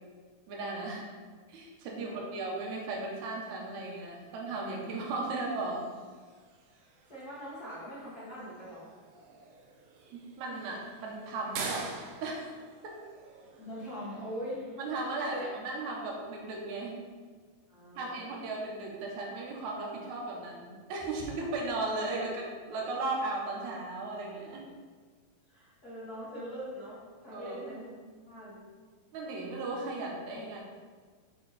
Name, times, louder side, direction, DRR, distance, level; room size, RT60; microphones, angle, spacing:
voice 1, 0.5-1.1 1.5-5.9 10.1-11.9 12.2-12.5 12.8-12.9 14.8-17.0 18.0-24.6 27.3-27.6 29.1-30.6, right 2 dB, 65° right, -1 dB, 2.2 m, -36 dB
voice 2, 2.0-2.5 7.1-8.9 13.6-14.7 15.3-15.5 17.7-18.4 22.2-22.3 25.5-28.0 28.2-28.7, equal, 45° left, -9 dB, 1.2 m, -42 dB
sound 1, 3.1-15.0, right 4 dB, 90° right, 2.4 m, -48 dB
7.9 x 3.8 x 4.2 m, 1.6 s
omnidirectional pair, 3.9 m